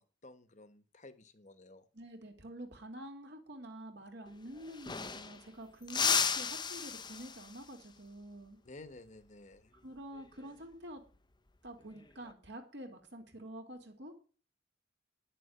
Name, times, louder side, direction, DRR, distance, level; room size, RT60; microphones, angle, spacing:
voice 1, 0.0-1.8 8.6-9.7, left 2 dB, 40° left, 12 dB, 1.2 m, -53 dB
voice 2, 1.9-8.6 9.7-11.0 11.6-14.2, right 1 dB, 60° right, 4 dB, 2.5 m, -48 dB
sound 1, 4.3-4.4 4.6-5.5 5.9-7.7 10.1-10.4 11.8-12.3, left 6 dB, 25° left, 0.7 m, -34 dB
10.0 x 6.8 x 9.2 m, 0.39 s
head